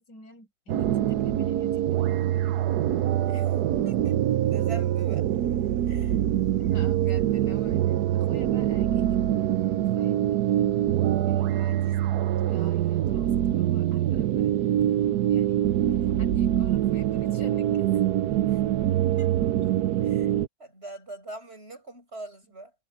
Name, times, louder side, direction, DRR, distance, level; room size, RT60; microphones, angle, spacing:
voice 1, 0.0-2.5 6.4-10.4 11.3-14.5 14.8-15.6 16.0-18.0, left 2 dB, 85° left, 5.9 m, -51 dB
sound 1, 0.7-20.5, right 12 dB, 75° right, 1.2 m, -24 dB
voice 2, 3.3-3.6 3.8-5.3 5.9-6.2 18.5-18.6 19.0-19.4 20.0-22.7, right 2 dB, 35° right, 7.9 m, -43 dB
omnidirectional pair, 1.8 m